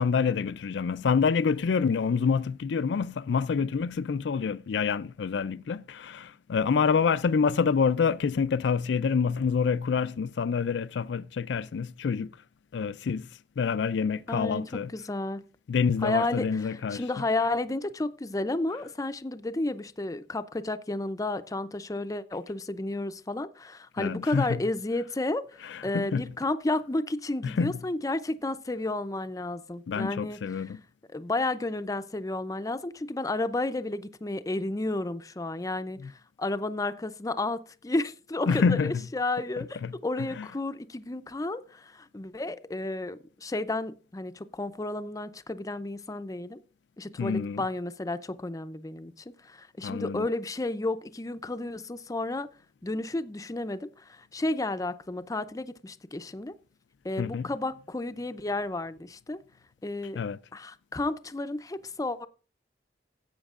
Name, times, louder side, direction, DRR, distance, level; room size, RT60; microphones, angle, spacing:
voice 1, 0.0-12.3 12.7-13.3 13.6-14.9 15.7-17.0 24.0-24.6 25.6-26.2 27.4-27.8 29.9-30.8 36.0-36.1 38.5-39.0 39.8-40.5 47.2-47.6 49.8-50.2 57.2-57.5 60.1-60.4, left 5 dB, 80° left, 0.4 m, -27 dB
voice 2, 14.3-15.4 16.0-25.5 25.8-30.4 31.1-36.1 36.4-46.6 47.0-49.1 49.4-52.5 52.8-56.5 57.0-59.4 59.8-60.2 60.5-62.3, left 2 dB, 20° left, 0.5 m, -32 dB
16.5 x 8.1 x 2.4 m
head